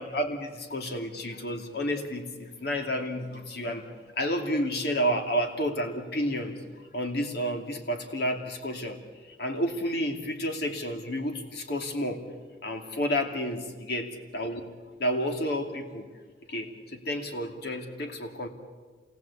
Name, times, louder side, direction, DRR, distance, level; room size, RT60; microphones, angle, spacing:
voice 1, 0.0-3.9 4.2-6.6 6.9-9.0 9.3-12.2 12.6-14.1 14.3-14.6 15.0-16.1 16.5-18.5, equal, 60° left, 4 dB, 2.6 m, -30 dB
27.5 x 19.5 x 8.4 m, 1.4 s
head